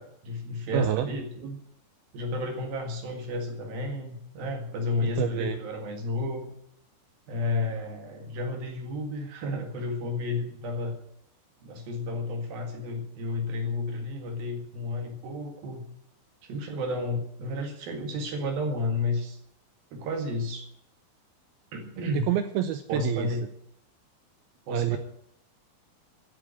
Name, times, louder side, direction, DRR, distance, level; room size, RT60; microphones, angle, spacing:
voice 1, 0.0-1.6 2.1-6.5 7.3-11.0 11.6-15.8 16.4-19.4 19.9-20.6 21.7-22.3 22.9-23.4 24.7-25.0, left 2 dB, 60° right, 3 dB, 3.4 m, -32 dB
voice 2, 0.7-1.1 5.2-5.6 22.1-23.4 24.7-25.0, right 10 dB, 85° right, 9 dB, 2.2 m, -27 dB
13.5 x 8.6 x 8.5 m, 0.70 s
omnidirectional pair, 5.2 m